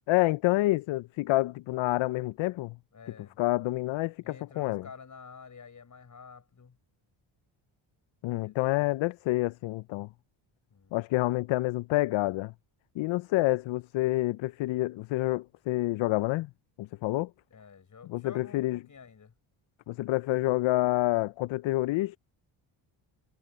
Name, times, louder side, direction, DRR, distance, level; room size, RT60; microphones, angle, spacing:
voice 1, 0.1-2.7 3.4-4.9 8.2-10.1 10.9-12.5 13.0-16.5 16.8-17.3 18.1-18.8 19.9-22.2, left 19 dB, 70° left, 0.5 m, -28 dB
voice 2, 2.9-3.4 4.2-6.8 8.4-8.8 10.7-11.1 17.5-19.3, left 6 dB, 35° left, 6.7 m, -50 dB
cardioid pair, 110°, 49 cm